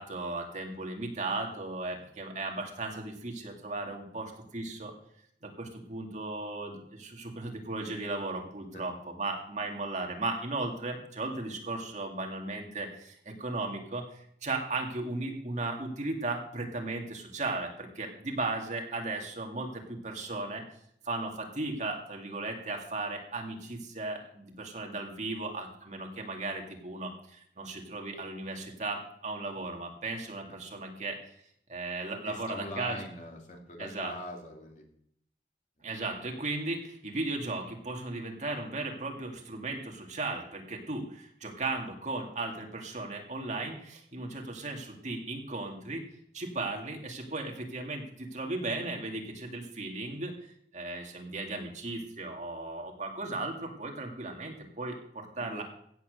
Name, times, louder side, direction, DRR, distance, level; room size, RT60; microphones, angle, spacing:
voice 1, 0.0-4.9 5.4-20.6 21.0-31.2 31.7-33.0 33.8-34.1 35.8-46.0 46.3-55.6, right 2 dB, 40° right, 2 dB, 2.3 m, -36 dB
voice 2, 32.2-34.8 55.4-55.6, left 1 dB, 45° left, 1 dB, 2.8 m, -42 dB
16.5 x 7.1 x 6.7 m, 0.68 s
head